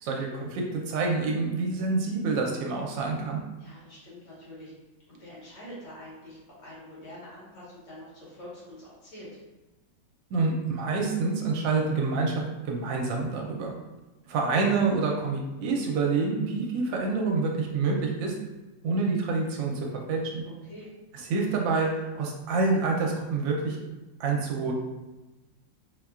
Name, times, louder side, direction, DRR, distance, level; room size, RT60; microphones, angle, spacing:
voice 1, 0.0-3.4 10.3-13.7 14.3-18.3 18.8-20.4 21.3-23.8 24.2-24.7, right 4 dB, 80° right, 0 dB, 1.3 m, -27 dB
voice 2, 3.6-4.7 5.1-9.3 20.5-20.9, left 1 dB, 70° left, -8 dB, 2.1 m, -46 dB
4.1 x 2.2 x 2.3 m, 1.1 s
omnidirectional pair, 2.0 m